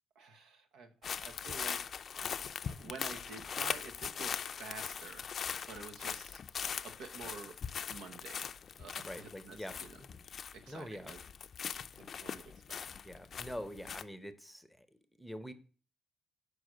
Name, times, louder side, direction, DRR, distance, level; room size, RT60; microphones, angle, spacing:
voice 1, 0.1-1.8 2.7-6.4 6.8-7.6 7.9-10.0 10.5-11.2 12.0-12.8, right 4 dB, 85° right, 7 dB, 0.9 m, -50 dB
sound 1, 1.0-10.8 11.1-14.0, left 7 dB, 50° left, 0.4 m, -41 dB
voice 2, 9.0-10.1 10.7-11.1 11.7-11.8 13.0-14.9 15.2-15.5, equal, ahead, 11 dB, 0.7 m, -45 dB
6.4 x 5.0 x 6.2 m, 0.40 s
cardioid pair, 90°, 0 cm